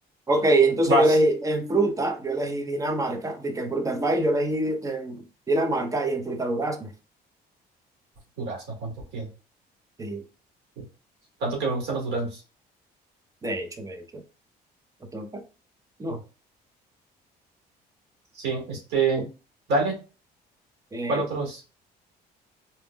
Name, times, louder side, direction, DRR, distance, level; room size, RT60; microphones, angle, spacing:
voice 1, 0.3-6.9 10.0-10.2 13.4-14.2 15.1-15.4 16.0-16.2 19.2-19.3 20.9-21.2, right 2 dB, 20° right, 0.8 m, -25 dB
voice 2, 0.8-1.2 8.4-9.3 11.4-12.4 16.1-16.2 18.3-19.3 19.7-20.0 21.1-21.6, right 3 dB, 80° right, 2.2 m, -26 dB
4.2 x 3.6 x 2.3 m
cardioid pair, 110°, 17 cm